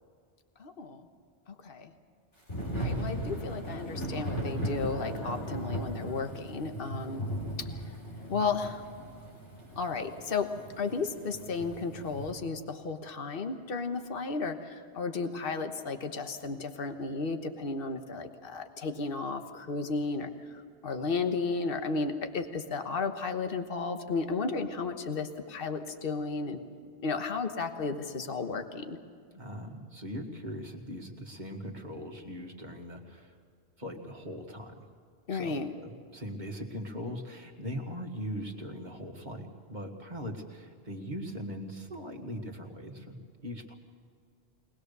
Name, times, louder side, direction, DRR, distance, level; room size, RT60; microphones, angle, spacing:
voice 1, 0.6-1.0 1.5-1.9 2.7-7.2 7.6-7.7 8.3-8.9 9.7-10.5 10.8-26.6 27.0-29.0 35.3-35.7, left 4 dB, 50° left, 7 dB, 1.4 m, -33 dB
Thunder / Rain, 2.5-12.3, equal, 75° left, 4.6 m, -37 dB
voice 2, 29.3-33.4 33.8-34.9 35.3-43.7, equal, 40° right, 2 dB, 2.0 m, -40 dB
22.5 x 20.0 x 6.8 m, 2.2 s
omnidirectional pair, 1.2 m